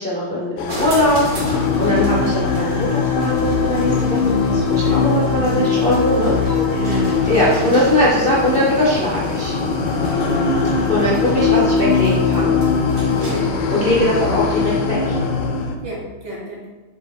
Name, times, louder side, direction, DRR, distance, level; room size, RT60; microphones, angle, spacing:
voice 1, 0.0-6.3 6.7-7.0 7.3-9.5 10.9-12.5 13.3-13.4 13.7-15.2, left 1 dB, 35° left, -6 dB, 1.0 m, -20 dB
sound 1, 0.6-15.8, left 5 dB, 75° left, 1.5 m, -20 dB
sound 2, 0.7-13.6, equal, 35° right, 1.4 m, -32 dB
voice 2, 4.8-5.2 6.4-7.5 13.2-13.5 15.8-16.7, equal, 60° right, -4 dB, 1.9 m, -30 dB
7.2 x 3.3 x 4.1 m, 1.1 s
omnidirectional pair, 2.4 m